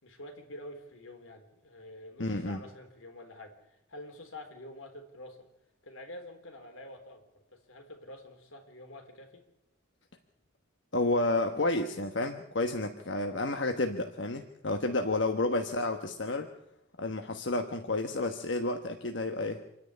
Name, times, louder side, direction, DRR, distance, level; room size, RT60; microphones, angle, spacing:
voice 1, 0.0-5.5 5.8-7.2 7.5-9.4 13.4-13.6 15.5-15.7, left 1 dB, 85° left, 5 dB, 3.7 m, -47 dB
voice 2, 2.2-2.6 10.9-16.5 17.0-19.7, left 2 dB, 65° left, 5 dB, 1.3 m, -31 dB
27.0 x 10.0 x 9.9 m, 0.84 s
head